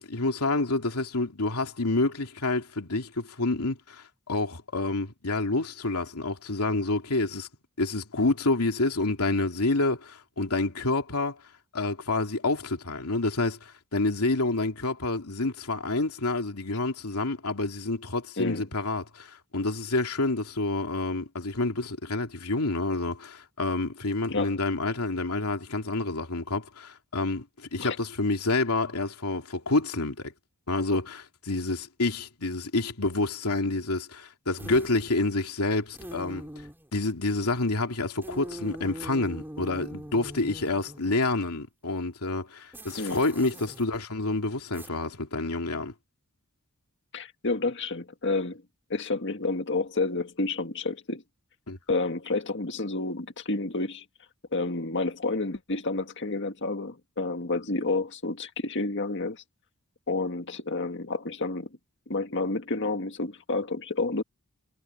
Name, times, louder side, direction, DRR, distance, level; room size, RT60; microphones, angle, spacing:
voice 1, 0.0-7.5 7.8-11.4 11.7-27.4 27.7-30.3 30.7-36.5 36.9-45.9 51.7-51.8, left 2 dB, 85° left, 2.8 m, -28 dB
sound 1, 34.6-35.2 35.9-36.9 38.2-41.2 42.7-43.8 44.7-44.9, right 1 dB, 10° right, 2.9 m, -42 dB
voice 2, 47.1-48.6 48.9-51.2 51.9-54.0 54.5-59.4 60.1-61.7 62.1-64.2, left 3 dB, 55° left, 1.9 m, -30 dB
head